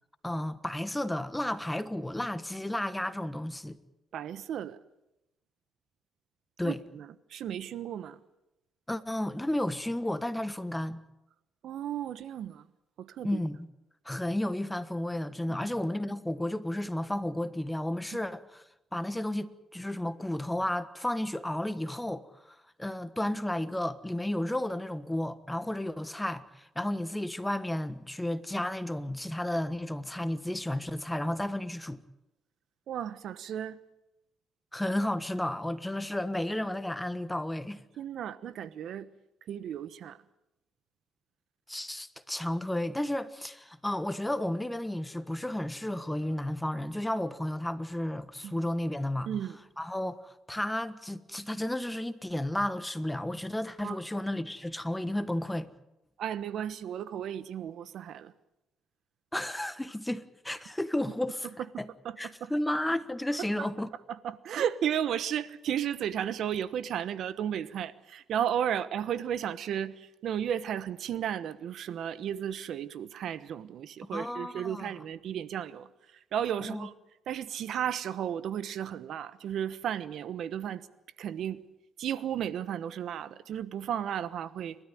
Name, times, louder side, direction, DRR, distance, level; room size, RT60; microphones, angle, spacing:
voice 1, 0.2-3.8 6.6-6.8 8.9-11.0 13.2-13.7 14.0-18.6 18.9-22.2 22.8-32.0 34.7-37.8 41.7-49.3 49.8-55.7 59.3-61.5 61.8-61.9 62.2-63.9 74.1-74.9 76.6-76.9, left 1 dB, 10° left, 1.3 m, -32 dB
voice 2, 4.1-4.8 6.6-8.2 11.6-12.6 13.0-13.4 15.5-15.6 32.9-33.8 38.0-39.1 39.5-40.2 48.4-48.6 49.3-49.6 53.8-54.0 56.2-58.3 62.0-62.5 64.1-75.9 76.3-76.9 77.3-80.9 81.2-81.6 82.0-84.8, right 9 dB, 70° right, 1.1 m, -34 dB
29.0 x 13.0 x 9.3 m
cardioid pair, 90°, 0 cm